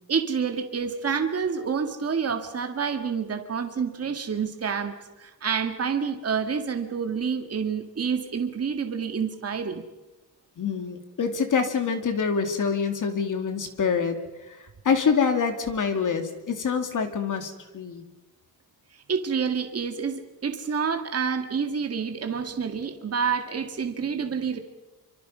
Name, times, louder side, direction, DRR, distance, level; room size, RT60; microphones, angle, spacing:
voice 1, 0.1-9.8 19.1-24.6, right 6 dB, 40° right, 6 dB, 1.9 m, -28 dB
voice 2, 10.6-14.2 14.5-18.1, left 6 dB, 50° left, 6 dB, 2.6 m, -26 dB
27.0 x 25.0 x 5.6 m, 1.1 s
wide cardioid pair, 155°, 39 cm